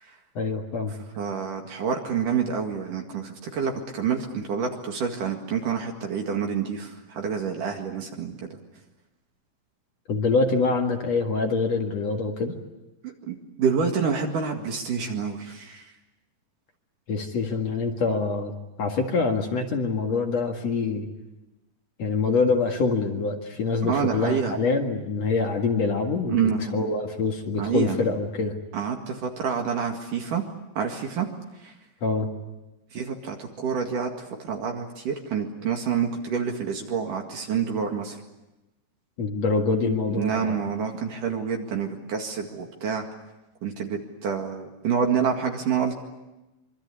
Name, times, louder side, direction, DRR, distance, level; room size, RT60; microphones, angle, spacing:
voice 1, 0.4-1.0 10.1-12.5 17.1-21.1 22.0-28.6 32.0-32.3 39.2-40.6, left 4 dB, 50° left, 3 dB, 2.6 m, -25 dB
voice 2, 1.2-8.4 13.3-15.8 23.8-24.5 26.3-26.9 27.6-28.0 28.7-30.4 30.8-31.3 32.9-34.1 34.5-38.2 40.2-43.1 43.6-45.9, right 6 dB, 60° right, 2 dB, 3.4 m, -27 dB
25.5 x 25.0 x 8.4 m, 1.0 s
omnidirectional pair, 4.4 m